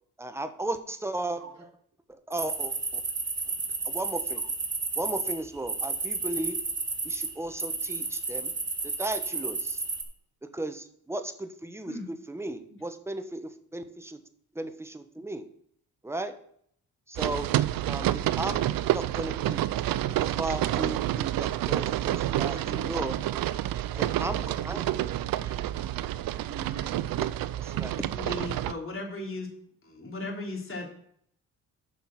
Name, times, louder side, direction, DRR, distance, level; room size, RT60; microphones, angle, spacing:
voice 1, 0.2-1.7 2.1-3.0 3.8-4.5 4.9-6.6 7.0-8.5 8.8-9.8 10.4-14.2 14.5-15.5 16.0-16.4 17.1-17.5 17.8-19.6 20.2-23.1 23.9-24.9 27.6-28.1, right 2 dB, 5° right, 9 dB, 1.0 m, -35 dB
sound 1, 2.3-5.3 5.7-7.3 7.6-10.0, right 4 dB, 30° right, 1.7 m, -31 dB
sound 2, 17.2-28.7, right 13 dB, 65° right, 0.5 m, -29 dB
voice 2, 22.5-23.2 25.3-25.8 26.2-27.2, right 4 dB, 45° right, 2 dB, 2.5 m, -44 dB
voice 3, 28.1-29.5 29.8-30.9, left 2 dB, 35° left, -1 dB, 3.4 m, -36 dB
7.6 x 5.9 x 6.0 m, 0.65 s
supercardioid pair, 65°, 37 cm